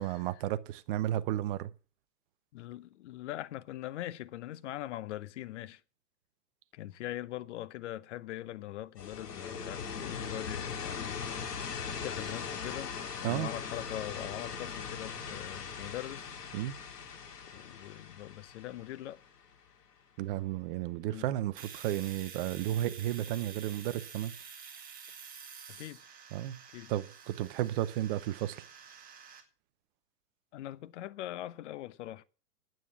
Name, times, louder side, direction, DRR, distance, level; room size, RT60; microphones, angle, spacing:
voice 1, 0.0-1.7 13.2-13.5 16.5-16.7 20.2-24.3 26.3-26.6 26.9-28.6, right 13 dB, 35° right, 0.8 m, -33 dB
voice 2, 2.5-5.8 6.7-16.3 17.4-19.2 21.1-21.3 25.7-26.0 26.7-26.9 30.5-32.2, left 14 dB, 45° left, 0.8 m, -42 dB
sound 1, 9.0-19.7, left 6 dB, 75° left, 2.4 m, -40 dB
Domestic sounds home sounds, 21.6-29.4, right 7 dB, 15° right, 2.1 m, -49 dB
9.4 x 9.2 x 7.1 m
hypercardioid pair, 125°, 48 cm